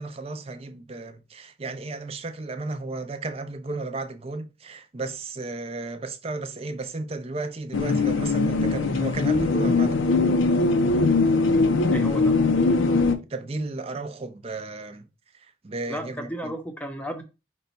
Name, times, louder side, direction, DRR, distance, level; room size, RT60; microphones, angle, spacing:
voice 1, 0.0-10.3 13.3-15.0 15.3-16.5, right 3 dB, 30° right, 0.5 m, -34 dB
sound 1, 7.7-13.2, left 3 dB, 80° left, 0.5 m, -21 dB
voice 2, 11.9-12.4 15.9-17.2, equal, 10° left, 0.7 m, -33 dB
5.3 x 2.2 x 4.0 m
head